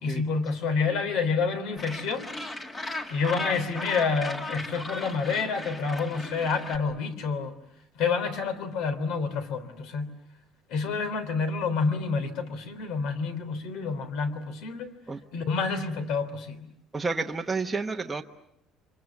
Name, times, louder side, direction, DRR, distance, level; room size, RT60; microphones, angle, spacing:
voice 1, 0.0-2.3 3.1-7.5 7.9-10.1 10.7-14.9 15.3-16.7, left 5 dB, 65° left, 11 dB, 3.3 m, -28 dB
Gull seagull, 1.8-6.8, left 2 dB, 20° left, 1.9 m, -37 dB
voice 2, 16.9-18.2, right 4 dB, 10° right, 1 dB, 1.0 m, -30 dB
29.5 x 26.0 x 7.1 m, 0.77 s
cardioid pair, 170°, 0 cm